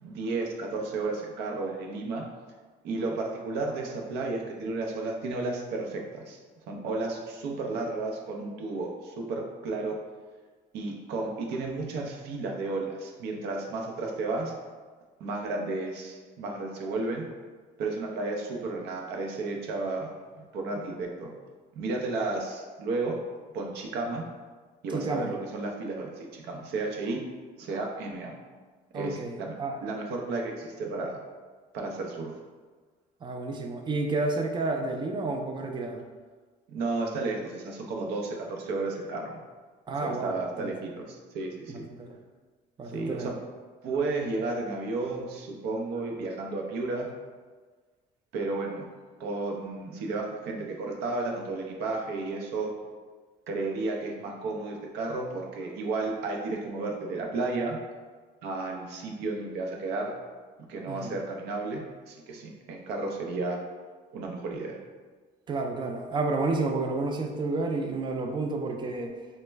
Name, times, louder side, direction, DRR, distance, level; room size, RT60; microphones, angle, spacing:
voice 1, 0.0-2.2 2.8-6.4 6.7-10.0 10.7-14.5 15.2-17.2 17.8-20.1 20.3-21.3 21.8-23.2 23.5-24.3 24.8-27.2 27.6-28.3 28.9-29.5 29.8-31.2 31.7-32.3 36.7-39.4 40.0-41.9 42.9-43.4 43.8-47.1 48.3-48.9 49.2-52.7 53.5-57.8 58.4-60.1 60.7-61.8 62.1-63.6 64.1-64.8, right 3 dB, 80° right, 1 dB, 0.6 m, -32 dB
voice 2, 24.9-25.4 28.9-29.8 33.2-36.1 39.9-40.7 41.7-42.2 42.8-43.3 60.9-61.2 65.5-69.2, right 3 dB, 25° right, 4 dB, 0.4 m, -31 dB
3.0 x 2.1 x 3.3 m, 1.4 s
cardioid pair, 110°, 17 cm